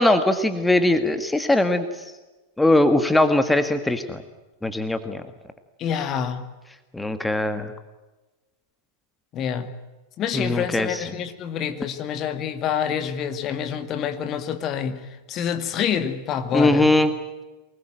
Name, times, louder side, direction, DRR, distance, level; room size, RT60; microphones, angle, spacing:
voice 1, 0.0-2.0 2.6-4.2 4.6-5.2 6.9-7.7 10.3-11.0 16.5-17.1, left 1 dB, 5° left, 9 dB, 1.8 m, -20 dB
voice 2, 5.8-6.5 9.3-9.7 10.2-16.9, left 8 dB, 35° left, 9 dB, 2.1 m, -27 dB
24.5 x 21.0 x 9.0 m, 1.1 s
figure-of-eight pair, 90°, 0 cm